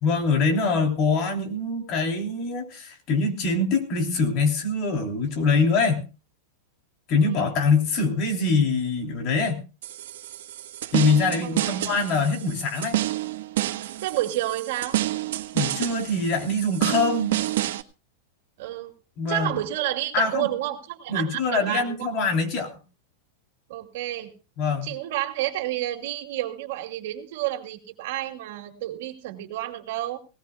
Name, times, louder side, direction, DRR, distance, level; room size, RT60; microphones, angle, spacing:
voice 1, 0.0-6.0 7.1-9.6 10.9-13.0 15.5-17.4 19.2-19.6 20.1-20.5 21.1-22.7 24.6-24.9, left 4 dB, 35° left, 4 dB, 3.1 m, -24 dB
voice 2, 7.2-7.5 11.4-11.9 14.0-15.0 18.6-18.9 19.3-22.0 23.7-24.3 24.8-30.2, right 14 dB, 55° right, 4 dB, 2.6 m, -30 dB
sound 1, 9.8-17.8, right 14 dB, 70° right, 1.3 m, -29 dB
19.5 x 19.0 x 2.4 m, 0.32 s
supercardioid pair, 170°, 0 cm